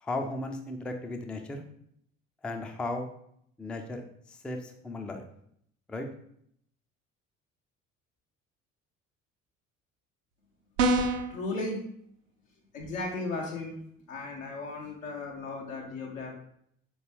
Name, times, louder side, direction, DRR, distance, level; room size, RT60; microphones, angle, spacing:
voice 1, 0.0-1.6 2.4-3.1 3.6-5.2 5.9-6.1, left 2 dB, 5° left, 5 dB, 0.3 m, -36 dB
sound 1, 10.8-11.3, right 2 dB, 75° right, 0.6 m, -24 dB
voice 2, 11.3-11.8 12.7-13.8 14.1-16.3, left 2 dB, 80° left, -1 dB, 1.0 m, -35 dB
4.3 x 3.0 x 3.3 m, 0.69 s
figure-of-eight pair, 50°, 39 cm